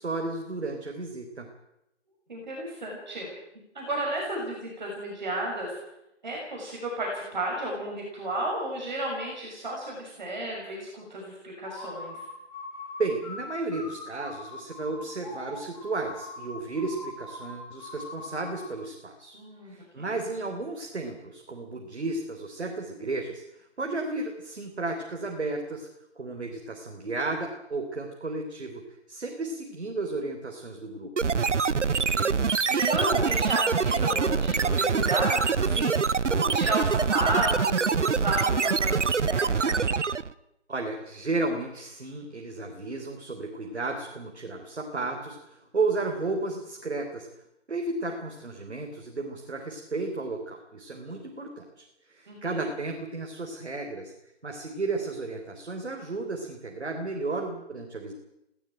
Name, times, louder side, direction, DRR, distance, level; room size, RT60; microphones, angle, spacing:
voice 1, 0.0-1.5 13.0-19.4 19.6-25.9 26.2-31.5 40.7-47.3 47.7-54.1 54.4-58.1, right 3 dB, 65° right, 3 dB, 3.8 m, -33 dB
voice 2, 2.3-3.3 3.7-5.8 6.2-12.2 19.3-20.1 31.7-39.9 52.3-52.6, right 1 dB, 40° right, -2 dB, 6.5 m, -33 dB
sound 1, 11.6-18.8, left 3 dB, 30° left, 5.4 m, -42 dB
sound 2, 31.2-40.3, right 5 dB, 80° right, 1.0 m, -25 dB
19.0 x 17.0 x 9.0 m, 0.86 s
figure-of-eight pair, 170°, 35 cm